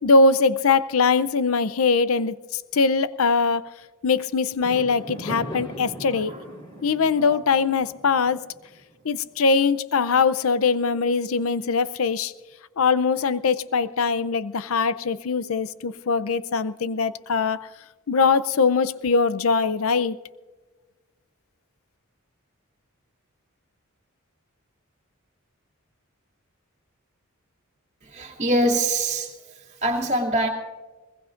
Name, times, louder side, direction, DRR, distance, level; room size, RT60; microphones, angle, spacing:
voice 1, 0.0-3.7 4.0-6.3 6.8-8.4 9.0-12.3 12.8-17.6 18.1-20.2, left 4 dB, 75° left, 0.6 m, -22 dB
Fireworks, 4.6-9.1, right 1 dB, 25° left, 4.1 m, -39 dB
voice 2, 28.0-29.3 29.8-30.5, right 1 dB, 35° right, 2.7 m, -24 dB
22.5 x 21.0 x 2.5 m
head